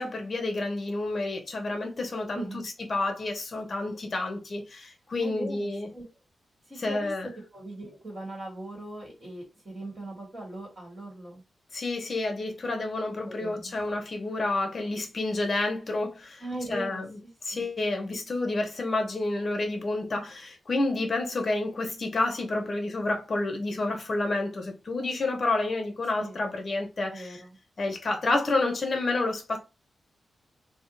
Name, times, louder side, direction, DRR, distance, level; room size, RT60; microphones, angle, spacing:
voice 1, 0.0-2.4 2.9-5.9 6.8-7.3 11.7-16.4 16.7-17.1 17.4-27.4 27.8-29.6, left 2 dB, 40° left, 0.9 m, -29 dB
voice 2, 2.3-2.7 5.2-6.1 6.6-7.1 7.5-11.4 13.2-13.7 16.4-17.0 17.5-17.7 26.1-26.4 27.1-27.6, right 1 dB, 25° right, 1.4 m, -39 dB
2.6 x 2.2 x 3.9 m
wide cardioid pair, 135°, 0 cm